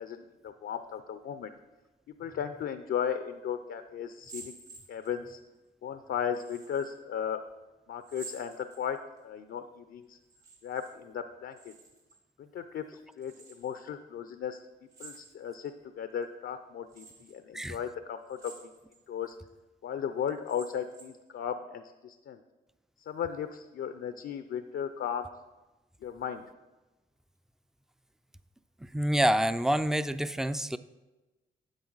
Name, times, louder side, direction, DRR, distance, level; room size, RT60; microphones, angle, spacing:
voice 1, 0.0-1.5 2.2-4.5 4.9-5.4 5.8-7.4 7.9-9.0 9.2-10.2 10.6-11.7 12.4-14.7 15.0-18.5 19.1-19.4 19.8-22.4 23.1-25.3 26.0-26.4, left 8 dB, 70° left, 9 dB, 0.6 m, -36 dB
sound 1, 4.1-5.3 6.3-6.9 8.0-9.2 10.2-10.9 11.2-12.2 13.2-13.8 14.9-15.7 16.2-16.3 16.9-17.4 18.2-19.0 19.5-19.6 20.3-21.3, right 4 dB, 85° right, 2.8 m, -50 dB
voice 2, 28.9-30.8, right 1 dB, ahead, 13 dB, 0.4 m, -27 dB
10.5 x 7.0 x 4.0 m, 1.1 s
cardioid pair, 65°, 21 cm